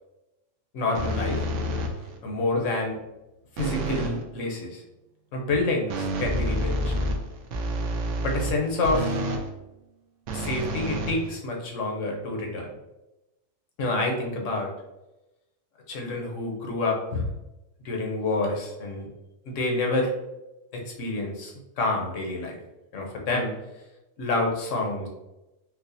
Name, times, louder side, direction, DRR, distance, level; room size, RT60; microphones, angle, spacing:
voice 1, 0.7-1.4 2.2-3.0 3.6-4.8 5.3-6.9 8.2-9.1 10.3-12.7 13.8-14.7 15.9-17.3 17.8-19.1 19.5-20.1 20.7-22.6 22.9-23.5 24.2-25.1, left 2 dB, 75° left, 0 dB, 1.1 m, -28 dB
sound 1, 0.9-2.2 3.6-4.2 5.9-9.5 10.3-11.7, right 1 dB, 75° right, 0.9 m, -29 dB
4.7 x 2.1 x 2.6 m, 0.97 s
omnidirectional pair, 1.3 m